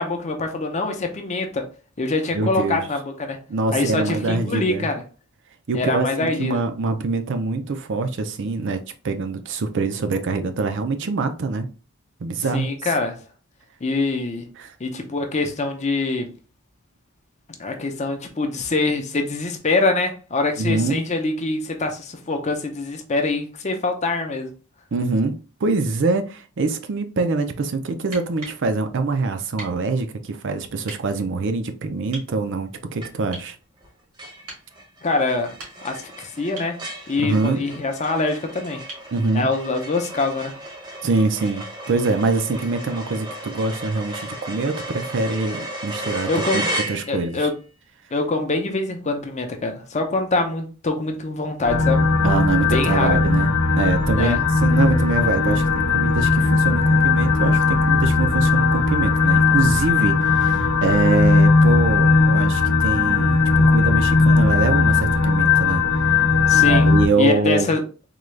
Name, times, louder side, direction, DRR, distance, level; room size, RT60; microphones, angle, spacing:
voice 1, 0.0-1.7 2.0-3.4 3.7-5.0 5.7-6.6 12.5-13.2 13.8-14.5 14.8-16.3 17.6-24.5 35.0-35.6 35.8-38.8 39.3-40.5 46.3-46.7 47.1-47.5 48.1-52.0 52.6-53.2 54.1-54.4 66.5-66.8 67.2-67.8, left 3 dB, 30° left, 0.6 m, -24 dB
voice 2, 2.3-2.8 3.5-4.9 5.7-11.7 12.2-12.7 14.6-14.7 20.6-21.0 24.9-33.6 37.2-37.6 39.1-39.5 41.0-46.6 46.9-47.4 52.2-65.8 66.5-67.7, right 3 dB, 55° right, 0.5 m, -24 dB
sound 1, 28.1-28.6 29.6-29.8 30.8-31.0 32.1-32.3 33.3-33.5 34.5-34.7 35.4-36.0 36.6-36.8 38.9-39.1 41.0-41.1, right 2 dB, 85° right, 1.8 m, -39 dB
sound 2, 33.0-33.5 33.8-33.9 34.2-47.5, right 1 dB, 20° right, 0.7 m, -34 dB
sound 3, 51.6-67.1, left 4 dB, 85° left, 0.6 m, -18 dB
3.8 x 2.3 x 3.2 m
head